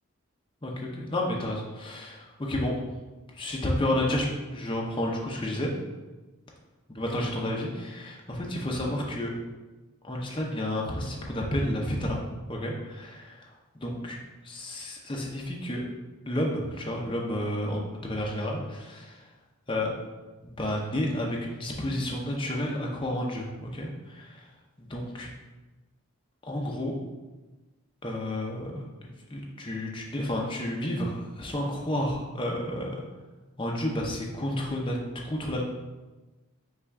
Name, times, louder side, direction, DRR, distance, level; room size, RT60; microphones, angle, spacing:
voice 1, 0.6-2.8 3.4-5.7 6.9-9.3 10.0-12.2 12.5-13.5 13.8-14.2 14.4-15.8 16.2-19.2 19.7-19.9 20.4-24.5 24.8-25.3 26.4-26.9 28.0-33.0 33.6-35.0 35.2-35.6, left 1 dB, 20° left, -1 dB, 0.6 m, -31 dB
5.6 x 2.4 x 3.5 m, 1.2 s
head